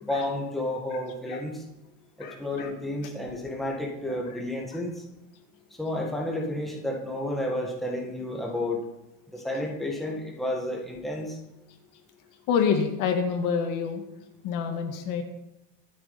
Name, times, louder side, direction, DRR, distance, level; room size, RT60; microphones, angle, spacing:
voice 1, 0.0-1.6 2.2-4.9 5.8-8.8 9.3-11.3, left 1 dB, ahead, -2 dB, 1.8 m, -31 dB
voice 2, 2.2-2.7 4.1-4.4 4.7-4.8 9.6-9.7 12.5-14.0 14.4-15.2, left 6 dB, 45° left, 5 dB, 1.8 m, -28 dB
24.0 x 8.6 x 4.2 m, 0.94 s
cardioid pair, 170°, 44 cm